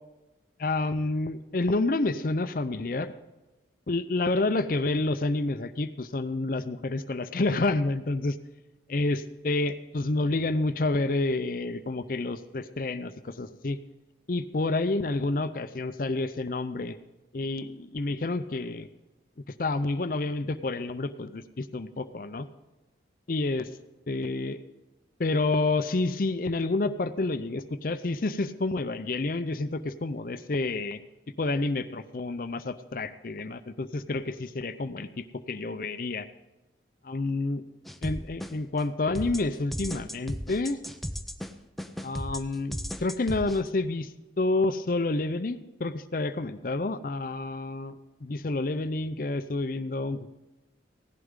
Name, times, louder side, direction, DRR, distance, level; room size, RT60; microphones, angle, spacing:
voice 1, 0.6-3.1 3.9-8.4 8.9-13.8 14.3-17.0 17.3-18.9 19.6-22.5 23.3-23.7 24.1-24.6 25.2-31.0 31.4-36.3 37.1-37.6 38.0-40.8 42.0-44.1 44.4-50.3, left 2 dB, 50° left, 11 dB, 0.6 m, -29 dB
sound 1, 37.9-38.8 39.2-43.7, equal, ahead, 0.5 m, -36 dB
16.5 x 11.5 x 3.7 m, 1.1 s
head